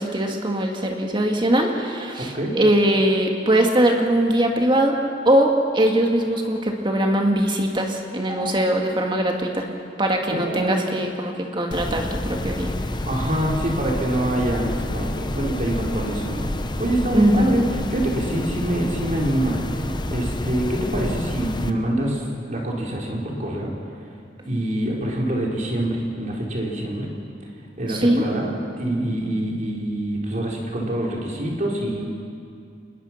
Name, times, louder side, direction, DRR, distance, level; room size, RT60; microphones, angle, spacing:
voice 1, 0.0-5.0 5.2-9.7 10.0-12.7 17.1-17.6 27.9-28.3, right 1 dB, 25° right, 2 dB, 2.3 m, -21 dB
voice 2, 2.2-2.5 10.3-10.9 13.0-23.7 24.4-27.1 27.8-32.1, right 1 dB, 45° right, -2 dB, 4.0 m, -25 dB
sound 1, 11.7-21.7, left 1 dB, 25° left, 0.9 m, -29 dB
26.5 x 21.0 x 6.0 m, 2.4 s
head